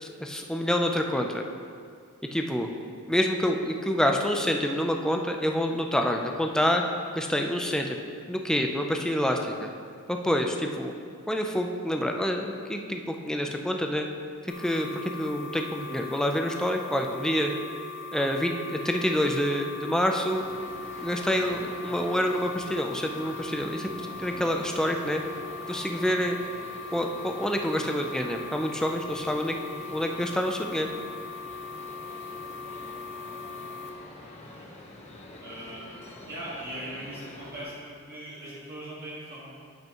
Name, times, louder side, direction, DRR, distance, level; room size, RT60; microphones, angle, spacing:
voice 1, 0.0-1.4 2.3-2.7 3.1-6.8 7.1-8.0 8.3-9.7 10.1-10.9 11.3-14.1 14.4-17.5 18.1-20.4 21.0-23.9 24.2-25.2 25.7-26.4 26.9-29.5 29.9-30.9, equal, 5° left, 3 dB, 0.5 m, -27 dB
voice 2, 2.6-2.9 24.2-24.5 33.2-33.6 34.2-34.6 35.4-35.9 36.3-39.6, right 1 dB, 45° right, -8 dB, 1.8 m, -41 dB
sound 1, 14.5-33.9, left 4 dB, 55° left, 0.8 m, -40 dB
sound 2, 20.3-37.6, left 1 dB, 30° left, 1.0 m, -46 dB
9.0 x 7.9 x 3.0 m, 2.2 s
head